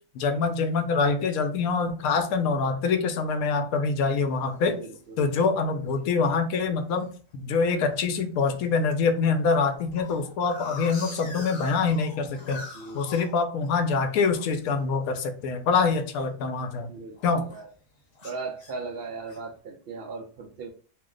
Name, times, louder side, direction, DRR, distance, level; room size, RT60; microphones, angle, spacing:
voice 1, 0.1-4.8 5.2-12.7 12.9-16.9 17.2-17.5, left 4 dB, 85° left, 8 dB, 1.0 m, -25 dB
sound 1, 4.4-4.8 5.3-5.4 5.6-6.0 6.3-7.1 7.6-8.0 8.4-8.5 8.7-8.8 9.2-14.0 14.3-16.9 17.1-17.7 18.1-19.5, left 4 dB, 55° left, 1.0 m, -44 dB
voice 2, 4.6-5.3 12.7-13.3 16.9-17.7 18.2-20.7, right 4 dB, 70° right, 2 dB, 0.5 m, -38 dB
2.7 x 2.0 x 3.7 m, 0.40 s
omnidirectional pair, 1.5 m